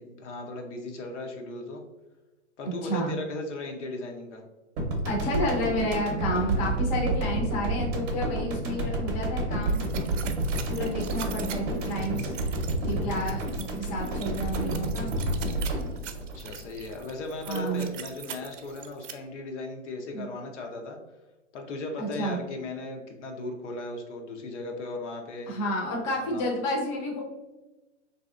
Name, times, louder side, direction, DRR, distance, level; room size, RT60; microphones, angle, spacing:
voice 1, 0.0-1.8 2.6-4.4 9.9-10.4 16.1-21.0 21.5-25.5 26.2-26.6, left 2 dB, 70° left, 2 dB, 0.7 m, -37 dB
voice 2, 2.8-3.1 5.0-9.8 10.7-12.3 12.8-13.4 13.7-15.1 17.5-17.9 20.1-20.3 22.0-22.4 25.5-27.2, equal, 30° left, -1 dB, 0.6 m, -30 dB
sound 1, 4.8-17.2, right 1 dB, 35° right, 0.7 m, -30 dB
sound 2, 9.6-19.1, right 8 dB, 75° right, 0.5 m, -42 dB
3.2 x 2.7 x 2.4 m, 1.1 s
hypercardioid pair, 135°, 37 cm